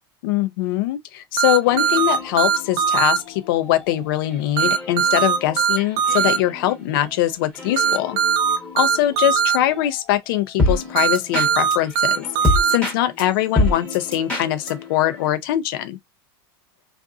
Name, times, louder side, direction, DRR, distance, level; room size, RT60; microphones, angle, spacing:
voice 1, 0.2-8.2 8.7-16.0, left 13 dB, 70° left, 0.5 m, -22 dB
sound 1, 1.4-3.2 4.6-6.4 7.8-9.6 11.0-12.8, right 8 dB, 55° right, 0.6 m, -19 dB
sound 2, 1.6-15.3, left 2 dB, 10° left, 0.9 m, -29 dB
2.7 x 2.5 x 2.3 m
supercardioid pair, 145°, 12 cm